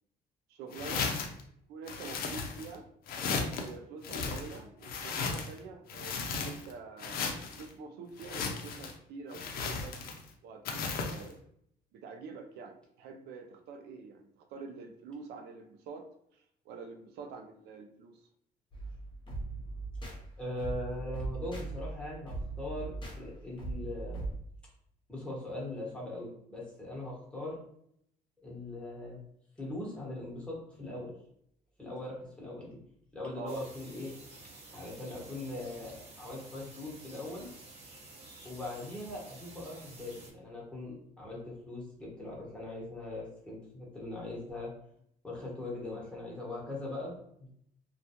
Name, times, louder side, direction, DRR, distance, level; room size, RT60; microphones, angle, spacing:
voice 1, 0.5-1.1 1.7-2.8 3.4-10.0 10.4-11.4 11.9-16.1 16.3-18.2 33.4-33.6, right 4 dB, 75° right, 5 dB, 0.4 m, -46 dB
sound 1, 0.7-1.4 1.9-2.8 3.1-3.7 4.0-5.6 5.9-6.7 7.0-7.6 8.2-8.9 9.3-10.3 10.7-11.3, left 5 dB, 60° left, 0.5 m, -35 dB
sound 2, 18.7-24.4, right 3 dB, 30° left, 0.8 m, -40 dB
voice 2, 20.4-22.9 23.2-24.2 25.1-27.6 28.4-29.2 29.6-31.1 31.8-32.8 33.1-34.1 34.7-37.5 38.4-44.7 45.2-47.5, left 1 dB, 5° left, -5 dB, 1.1 m, -40 dB
sound 3, 33.5-40.3, right 2 dB, 40° right, 0.9 m, -51 dB
2.3 x 2.2 x 2.8 m, 0.69 s
cardioid pair, 110°, 17 cm